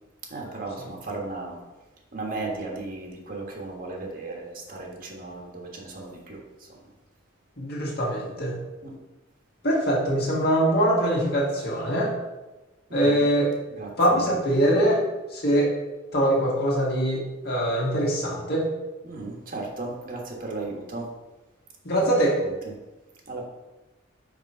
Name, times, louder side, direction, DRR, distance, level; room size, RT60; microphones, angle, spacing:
voice 1, 0.3-1.6 2.1-6.9 8.8-9.0 12.9-13.3 13.7-14.4 19.0-21.1 22.0-22.1 22.4-22.7 23.3-23.5, right 3 dB, 45° right, -1 dB, 1.4 m, -36 dB
voice 2, 7.6-8.6 9.6-12.1 12.9-13.5 14.0-15.0 15.3-15.7 16.1-18.7 21.8-22.4, right 1 dB, 55° left, -3 dB, 1.7 m, -23 dB
5.2 x 4.6 x 5.5 m, 1.1 s
head